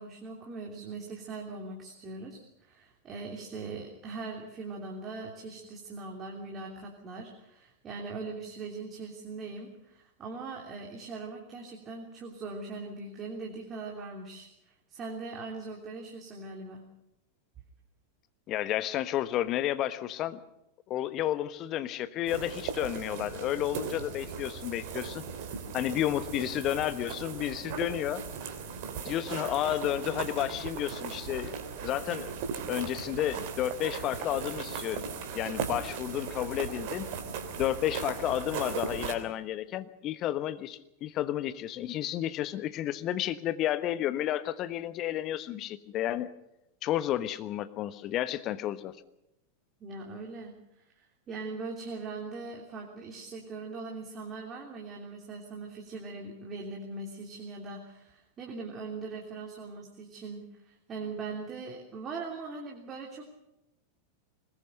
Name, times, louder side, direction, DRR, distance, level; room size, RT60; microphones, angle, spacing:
voice 1, 0.0-16.8 49.8-63.3, right 3 dB, 25° right, 0 dB, 3.1 m, -41 dB
voice 2, 18.5-20.4 20.9-25.2 25.7-28.2 29.0-31.5 31.8-32.3 32.7-37.1 37.6-46.3 46.8-48.9, left 13 dB, 35° left, 12 dB, 1.2 m, -31 dB
sound 1, 22.3-39.1, right 6 dB, 50° right, 3.1 m, -38 dB
22.0 x 20.5 x 6.6 m, 0.88 s
figure-of-eight pair, 90°, 0 cm